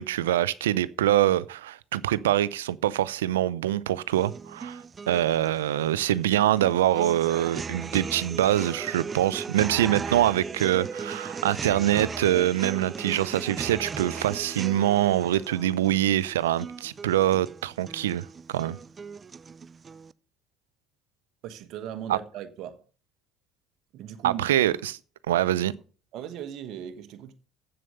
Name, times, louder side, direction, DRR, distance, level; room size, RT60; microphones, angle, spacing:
voice 1, 0.0-18.8 22.1-22.2 24.2-25.0 25.3-25.7, right 12 dB, 85° right, 0.5 m, -24 dB
sound 1, 4.1-20.1, right 5 dB, 35° right, 0.4 m, -38 dB
voice 2, 21.4-22.8 23.9-24.4 26.1-27.3, right 10 dB, 65° right, 1.2 m, -38 dB
7.9 x 7.6 x 6.8 m
hypercardioid pair, 65°, 0 cm